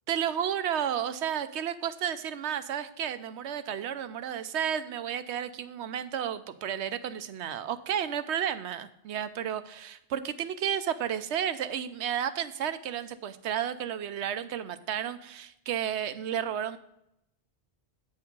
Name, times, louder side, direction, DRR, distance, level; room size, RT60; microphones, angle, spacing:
voice 1, 0.1-16.8, right 9 dB, 85° right, 12 dB, 1.0 m, -32 dB
9.2 x 5.4 x 5.2 m, 0.81 s
omnidirectional pair, 1.1 m